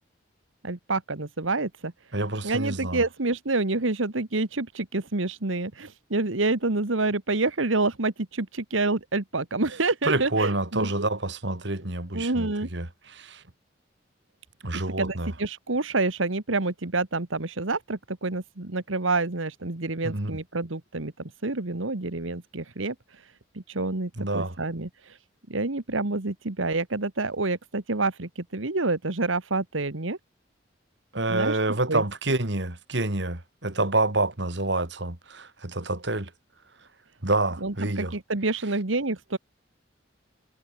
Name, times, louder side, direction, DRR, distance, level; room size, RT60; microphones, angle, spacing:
voice 1, 0.6-1.9 2.4-11.1 12.1-12.7 15.0-25.2 25.5-30.2 31.3-31.6 31.9-32.0 37.6-39.4, right 3 dB, 85° right, 1.7 m, -28 dB
voice 2, 2.1-3.0 10.0-13.4 14.6-15.3 20.0-20.3 24.2-24.6 31.1-36.3 37.2-38.1, right 2 dB, 65° right, 2.7 m, -28 dB
head